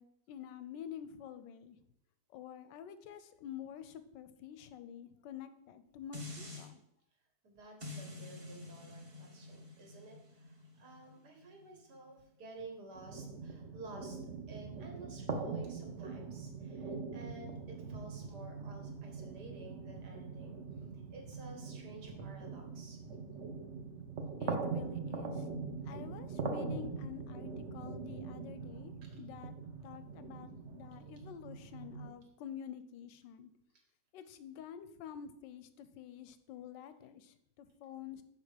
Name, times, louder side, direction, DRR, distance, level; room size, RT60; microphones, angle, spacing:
voice 1, 0.0-1.8 2.3-6.8 24.4-25.5 25.8-29.6 29.8-33.5 34.1-38.2, left 9 dB, 90° left, 12 dB, 1.3 m, -49 dB
sound 1, 6.1-6.7 7.8-13.0 13.4-13.5, left 2 dB, 20° right, 1.1 m, -49 dB
voice 2, 7.4-14.2 14.5-20.6 21.1-23.0 29.0-29.1, right 2 dB, 65° right, 2 dB, 2.0 m, -52 dB
sound 2, 12.9-32.1, right 4 dB, 50° right, 0.9 m, -42 dB
6.5 x 5.4 x 5.0 m, 0.77 s
omnidirectional pair, 1.9 m